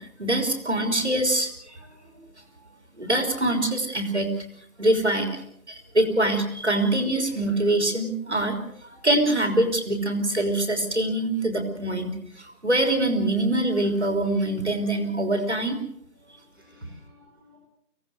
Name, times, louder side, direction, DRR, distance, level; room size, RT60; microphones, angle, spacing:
voice 1, 0.0-1.8 3.0-4.3 4.8-5.4 5.7-8.6 9.0-15.8, right 1 dB, 45° right, 5 dB, 3.7 m, -24 dB
voice 2, 1.7-2.2 2.5-2.7 4.7-4.9 5.8-6.0 8.9-9.1 16.2-17.6, left 1 dB, ahead, -18 dB, 3.5 m, -57 dB
24.5 x 18.0 x 7.9 m, 0.69 s
figure-of-eight pair, 175°, 49 cm